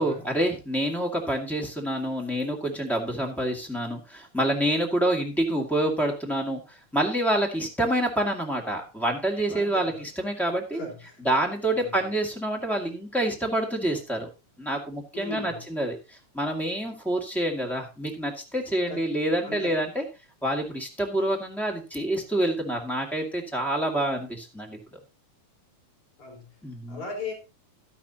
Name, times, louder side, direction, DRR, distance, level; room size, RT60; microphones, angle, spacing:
voice 1, 0.0-10.8 11.2-14.3 14.6-16.0 16.3-20.0 20.4-24.8 26.6-27.0, right 1 dB, ahead, 0 dB, 1.6 m, -27 dB
voice 2, 9.5-10.0 10.7-11.2 11.7-12.1 15.1-15.6 18.9-19.1 19.4-19.7 26.2-26.5 26.9-27.3, left 3 dB, 70° left, -1 dB, 5.3 m, -37 dB
12.0 x 11.0 x 2.9 m, 0.29 s
omnidirectional pair, 3.4 m